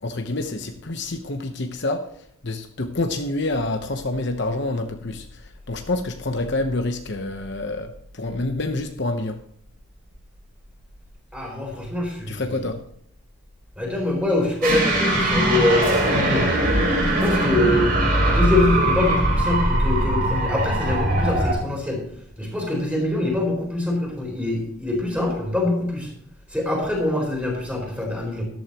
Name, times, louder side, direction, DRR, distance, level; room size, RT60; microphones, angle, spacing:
voice 1, 0.0-2.1 2.4-9.4 12.3-12.8, left 2 dB, 55° left, 6 dB, 1.0 m, -27 dB
voice 2, 11.3-12.4 13.8-16.5 17.2-17.9 18.2-22.0 22.4-26.1 26.5-28.4, left 2 dB, 5° right, -1 dB, 4.2 m, -24 dB
sound 1, 14.6-21.5, right 1 dB, 45° right, 3.9 m, -21 dB
14.0 x 12.5 x 3.0 m, 0.65 s
head